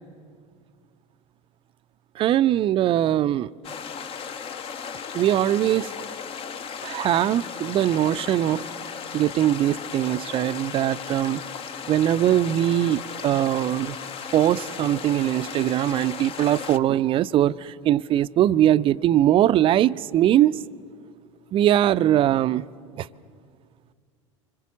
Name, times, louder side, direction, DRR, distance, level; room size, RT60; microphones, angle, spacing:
voice 1, 2.2-3.5 5.1-5.9 6.8-8.6 9.1-11.4 11.9-14.0 14.3-20.6 21.5-22.7 23.0-23.1, right 12 dB, 35° right, 0.5 m, -21 dB
sound 1, 3.6-16.8, left 7 dB, 35° left, 1.0 m, -36 dB
26.0 x 22.5 x 7.3 m
figure-of-eight pair, 75°, 16 cm